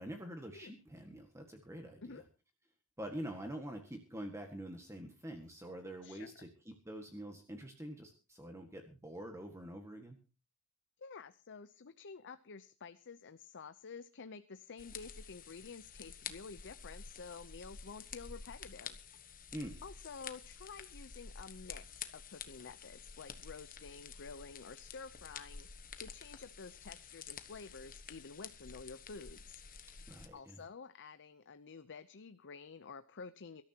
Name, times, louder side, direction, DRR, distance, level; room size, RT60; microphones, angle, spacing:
voice 1, 0.0-2.2 3.0-10.2 19.5-19.8 30.1-30.6, right 1 dB, 15° right, 4 dB, 1.7 m, -46 dB
voice 2, 11.0-19.0 19.8-25.7 26.0-29.6 30.3-33.6, left 5 dB, 55° left, 12 dB, 0.7 m, -50 dB
sound 1, 14.8-30.3, left 6 dB, 40° left, 1.2 m, -50 dB
24.0 x 13.0 x 2.9 m, 0.33 s
head